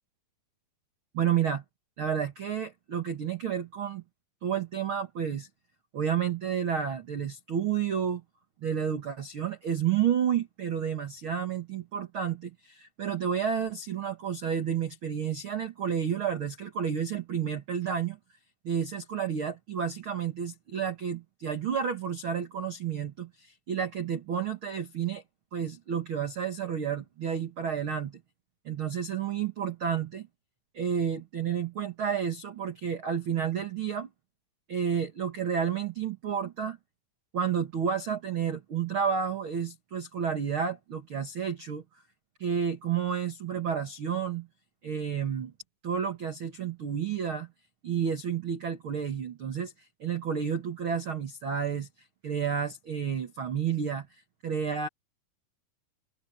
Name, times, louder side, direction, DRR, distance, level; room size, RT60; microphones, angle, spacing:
voice 1, 1.1-1.6 2.0-4.0 4.4-5.5 5.9-8.2 8.6-18.2 18.6-25.2 25.5-28.2 28.6-30.3 30.7-34.1 34.7-36.8 37.3-41.8 42.4-44.5 44.8-45.5 45.8-47.5 47.8-49.7 50.0-51.9 52.2-54.1 54.4-54.9, right 8 dB, 80° right, 1.1 m, -30 dB
open air
omnidirectional pair, 4.9 m